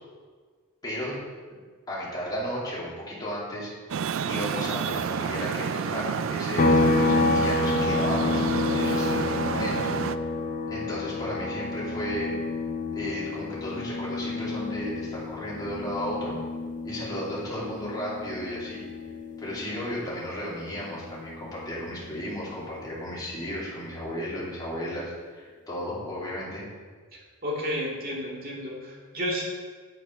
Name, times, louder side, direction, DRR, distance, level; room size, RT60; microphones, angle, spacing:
voice 1, 0.8-1.2 1.9-3.7 4.3-8.4 8.7-10.2 10.7-12.4 12.9-16.3 16.8-18.8 19.4-26.7, equal, 20° left, -7 dB, 2.9 m, -34 dB
Traffic noise roadway noise, 3.9-10.2, right 7 dB, 65° right, 0.3 m, -30 dB
sound 1, 6.6-20.1 20.5-22.7, left 2 dB, 35° left, 0.4 m, -29 dB
voice 2, 27.4-29.4, equal, 45° right, -4 dB, 2.3 m, -31 dB
8.0 x 6.2 x 5.6 m, 1.5 s
head